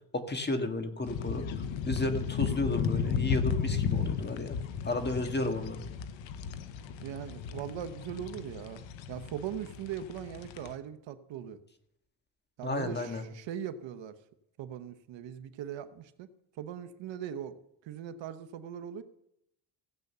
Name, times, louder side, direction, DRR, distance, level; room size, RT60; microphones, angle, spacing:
voice 1, 0.1-4.6 4.8-5.8 12.6-13.2, left 2 dB, 25° left, 6 dB, 1.7 m, -33 dB
sound 1, 1.1-10.7, left 7 dB, 85° left, 1.1 m, -34 dB
voice 2, 7.0-11.6 12.6-14.1 14.6-16.3 16.6-17.5 17.8-19.0, right 9 dB, 80° right, 11 dB, 1.0 m, -40 dB
16.0 x 8.0 x 6.7 m, 0.80 s
cardioid pair, 120°, 44 cm